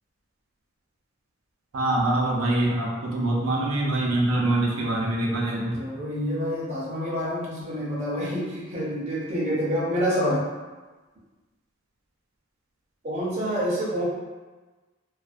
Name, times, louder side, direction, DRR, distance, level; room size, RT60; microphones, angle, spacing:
voice 1, 1.7-5.8, right 1 dB, 90° right, -2 dB, 0.5 m, -24 dB
voice 2, 5.7-10.4 13.0-14.0, equal, 35° right, -6 dB, 0.6 m, -27 dB
2.4 x 2.1 x 2.4 m, 1.3 s
head